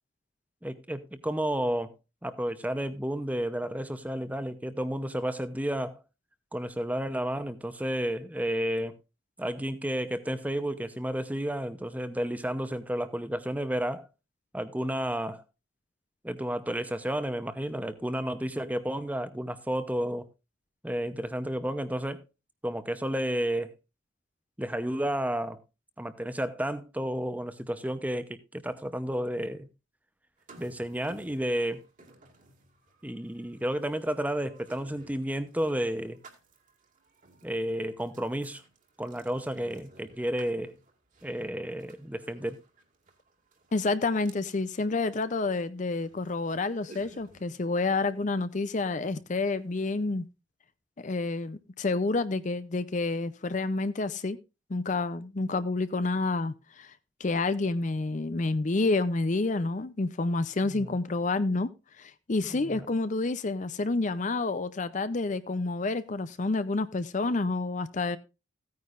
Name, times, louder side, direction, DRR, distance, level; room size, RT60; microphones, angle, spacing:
voice 1, 0.6-1.9 2.2-5.9 6.5-8.9 9.4-14.1 14.5-15.4 16.2-20.3 20.8-22.2 22.6-23.7 24.6-25.6 26.0-29.7 30.6-31.8 33.0-36.2 37.4-38.6 39.0-40.7 41.2-42.6 60.6-60.9 62.5-62.9, equal, 10° right, 0.7 m, -31 dB
sound 1, 30.4-47.6, right 3 dB, 40° right, 2.1 m, -58 dB
voice 2, 43.7-50.2 51.0-54.4 54.7-56.9 57.2-61.7 62.0-68.2, left 3 dB, 40° left, 0.5 m, -29 dB
15.5 x 9.5 x 2.5 m
head